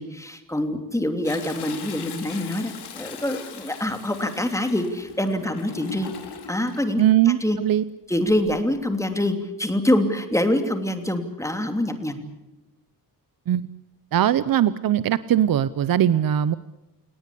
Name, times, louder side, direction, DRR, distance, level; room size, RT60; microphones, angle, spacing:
voice 1, 0.0-6.1 6.5-7.0 7.4-7.6 8.1-12.2, left 1 dB, 10° left, 6 dB, 3.0 m, -25 dB
Toilet flush, 1.2-6.8 8.3-8.7 9.2-9.3, left 7 dB, 85° left, 4.0 m, -40 dB
voice 2, 7.0-7.8 13.5-13.7 14.1-16.6, right 11 dB, 60° right, 16 dB, 0.8 m, -20 dB
29.0 x 18.5 x 8.5 m, 0.98 s
wide cardioid pair, 130°, 38 cm